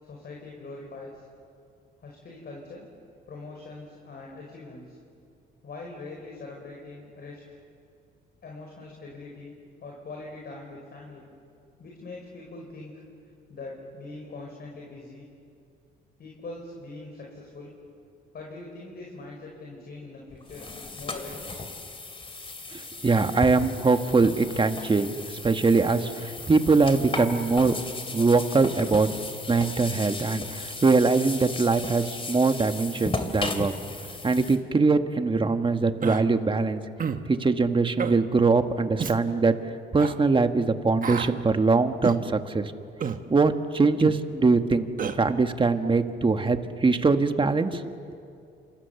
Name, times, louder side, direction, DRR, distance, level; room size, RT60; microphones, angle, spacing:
voice 1, 0.0-1.2 2.0-2.9 3.3-5.0 5.6-7.6 8.4-9.5 9.8-11.3 11.8-13.0 13.5-15.3 16.2-17.7 18.3-21.6, left 3 dB, 55° left, -1 dB, 5.2 m, -42 dB
sound 1, 20.3-34.6, left 3 dB, 25° left, 2.8 m, -36 dB
voice 2, 22.7-27.7 28.1-29.1 29.5-33.7 34.2-36.8 37.3-39.6 39.9-42.7 43.3-44.9 45.2-48.0, right 4 dB, 25° right, 7 dB, 1.6 m, -22 dB
Human voice, 36.0-36.2 37.0-37.2 38.0-38.2 39.0-39.2 40.0-40.1 41.0-41.3 42.0-42.2 43.0-43.2 44.0-44.2 45.0-45.2, right 6 dB, 45° right, 1.5 m, -29 dB
29.5 x 27.5 x 7.1 m, 2.5 s
cardioid pair, 90°, 20 cm